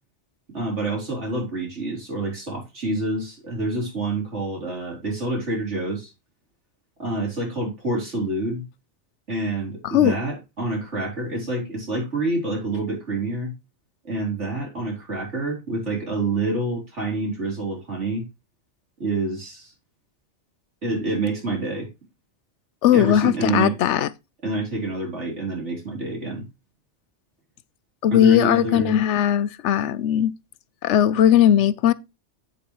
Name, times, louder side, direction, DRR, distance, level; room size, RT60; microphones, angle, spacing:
voice 1, 0.5-6.1 7.0-8.6 9.3-13.5 14.0-18.2 19.0-19.7 20.8-21.9 22.9-23.8 24.4-26.4 28.1-29.0, right 2 dB, 80° right, 4.5 m, -27 dB
voice 2, 22.8-24.1 28.0-30.3 30.8-31.9, left 10 dB, 80° left, 0.9 m, -18 dB
8.6 x 7.9 x 3.1 m
omnidirectional pair, 1.2 m